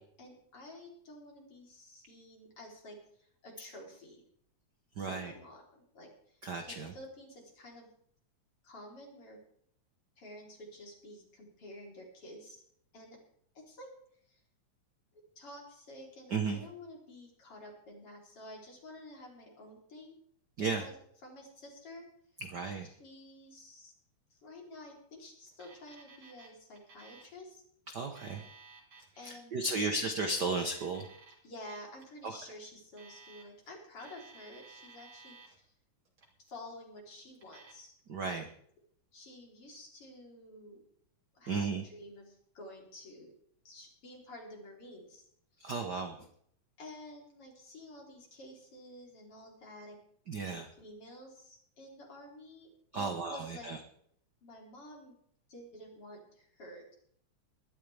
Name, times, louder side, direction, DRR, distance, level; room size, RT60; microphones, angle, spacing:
voice 1, 0.0-4.2 5.0-6.4 6.7-7.9 8.6-9.4 10.2-12.6 12.9-13.2 13.5-13.9 14.3-14.4 15.4-20.2 20.6-20.9 21.2-22.1 22.9-23.9 24.3-27.6 29.2-30.1 31.4-35.7 36.4-37.9 38.3-38.4 39.1-40.8 41.3-43.3 43.6-45.3 45.6-45.9 46.8-50.0 50.4-53.7 54.4-55.2 55.5-56.9, left 1 dB, 45° left, -1 dB, 4.5 m, -51 dB
voice 2, 5.0-5.3 6.4-6.9 16.3-16.6 20.6-20.8 22.5-22.9 27.9-28.5 29.2-31.1 32.2-32.4 38.1-38.4 41.5-41.8 45.6-46.2 50.3-50.6 52.9-53.8, right 3 dB, 60° right, 5 dB, 1.1 m, -34 dB
Alarm, 25.5-26.5 26.8-27.4 28.0-29.1 29.9-31.3 31.7-32.0 32.8-33.7 34.0-35.6 36.1-36.6 37.3-37.7, right 4 dB, 40° right, 3.6 m, -56 dB
20.5 x 12.5 x 3.5 m, 0.65 s
omnidirectional pair, 3.5 m